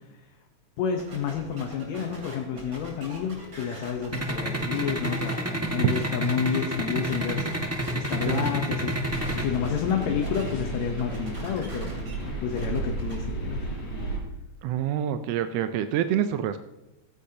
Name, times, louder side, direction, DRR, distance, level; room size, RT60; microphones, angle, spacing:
voice 1, 0.8-11.9 12.4-13.6, left 7 dB, 70° left, 3 dB, 2.2 m, -30 dB
sound 1, 1.0-8.5 8.9-10.5 10.8-13.2, right 1 dB, 35° right, 3.4 m, -43 dB
sound 2, 4.1-9.4, right 1 dB, 15° right, 0.4 m, -28 dB
sound 3, 9.1-14.2, right 2 dB, 85° left, 5.0 m, -33 dB
voice 2, 14.6-16.6, right 10 dB, 75° right, 9 dB, 1.5 m, -26 dB
15.5 x 15.0 x 2.9 m, 0.95 s
omnidirectional pair, 3.4 m